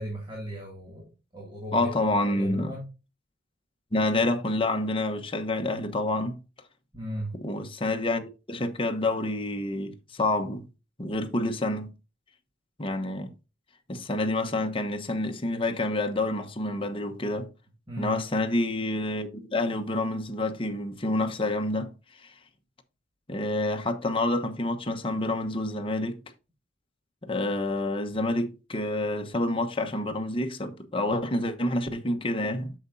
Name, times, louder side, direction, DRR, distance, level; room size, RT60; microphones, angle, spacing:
voice 1, 0.0-2.9 6.9-7.3 17.9-18.2, equal, 25° right, 2.3 m, -37 dB
voice 2, 1.7-2.7 3.9-6.4 7.4-10.7 11.0-11.9 12.8-13.3 13.9-17.5 18.0-21.9 23.3-26.2 27.2-32.7, left 2 dB, 30° left, 1.1 m, -28 dB
8.7 x 6.9 x 2.7 m
head